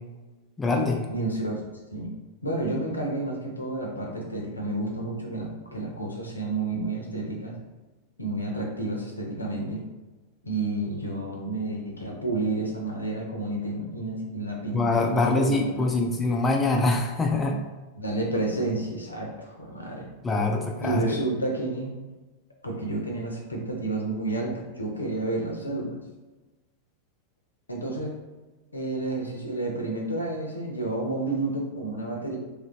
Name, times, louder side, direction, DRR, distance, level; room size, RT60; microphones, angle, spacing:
voice 1, 0.6-1.0 14.7-17.6 20.2-21.1, left 2 dB, 15° left, 1 dB, 0.4 m, -24 dB
voice 2, 1.1-2.1 2.4-7.6 8.2-9.9 10.4-14.8 15.1-16.0 18.0-20.1 20.8-21.9 22.6-26.0 27.7-28.2 28.7-32.4, right 2 dB, 80° left, 0 dB, 0.6 m, -30 dB
3.2 x 2.4 x 3.0 m, 1.2 s
figure-of-eight pair, 90°, 0 cm